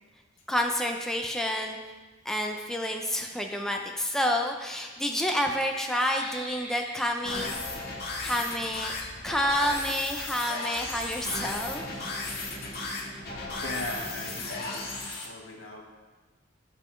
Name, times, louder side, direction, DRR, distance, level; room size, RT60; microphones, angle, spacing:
voice 1, 0.5-1.8 2.2-7.5 8.2-8.9 9.2-12.0, equal, 5° left, 2 dB, 0.5 m, -29 dB
sound 1, 4.7-11.4, left 2 dB, 30° left, 1.0 m, -48 dB
sound 2, 7.2-15.2, left 2 dB, 55° left, 1.4 m, -35 dB
voice 2, 13.6-15.8, left 1 dB, 85° left, -1 dB, 1.5 m, -38 dB
11.0 x 5.3 x 3.2 m, 1.3 s
head